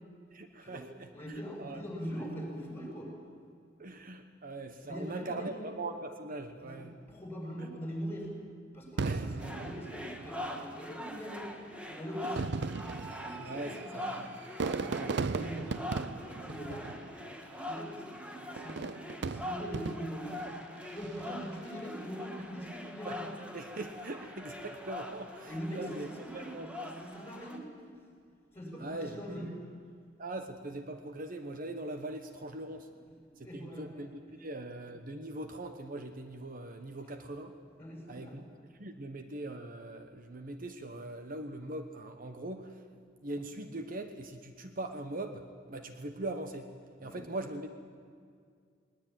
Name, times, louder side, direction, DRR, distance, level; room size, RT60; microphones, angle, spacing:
voice 1, 0.3-1.8 3.8-6.9 7.6-7.7 9.0-9.3 9.5-9.7 12.2-12.3 13.4-14.3 14.8-15.2 23.0-23.2 23.5-26.1 26.3-26.9 28.8-29.5 30.2-32.9 33.4-37.6 38.1-38.4 38.7-42.8 43.2-46.7 47.0-47.7, right 2 dB, 50° right, 7 dB, 1.1 m, -41 dB
voice 2, 1.1-3.2 4.8-5.7 6.6-8.3 8.7-11.5 11.8-12.6 13.2-14.0 14.6-17.0 17.4-20.5 20.9-23.3 25.4-28.1 28.5-29.5 33.4-34.0 37.8-38.4 47.0-47.2, equal, 15° left, -1 dB, 7.2 m, -42 dB
Fireworks, 9.0-10.6 11.4-11.5 12.2-17.5 18.6-20.3 20.9-21.4, right 4 dB, 65° right, 0.5 m, -37 dB
sound 1, 9.4-27.6, left 1 dB, 5° right, 1.7 m, -43 dB
20.0 x 20.0 x 9.1 m, 2.2 s
head